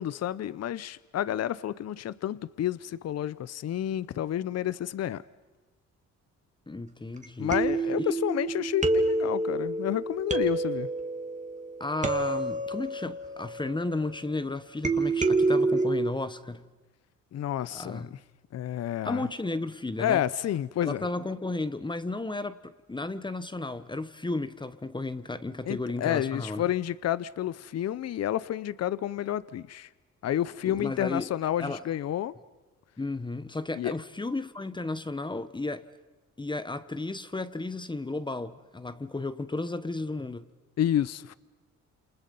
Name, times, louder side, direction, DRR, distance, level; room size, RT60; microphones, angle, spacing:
voice 1, 0.0-5.2 7.4-10.9 17.3-18.2 18.5-19.2 20.0-21.0 25.7-29.9 30.2-32.3 33.7-33.9 40.8-41.3, left 11 dB, 55° left, 0.8 m, -30 dB
voice 2, 6.7-7.5 8.0-8.1 11.8-16.6 17.7-18.1 19.0-20.2 20.8-26.6 30.6-31.3 31.6-31.8 33.0-35.9 36.4-40.5, left 2 dB, 15° left, 1.2 m, -33 dB
sound 1, 7.2-7.3 7.5-14.3 14.8-16.1, right 3 dB, 25° right, 2.3 m, -28 dB
28.5 x 28.0 x 5.5 m
cardioid pair, 90°, 30 cm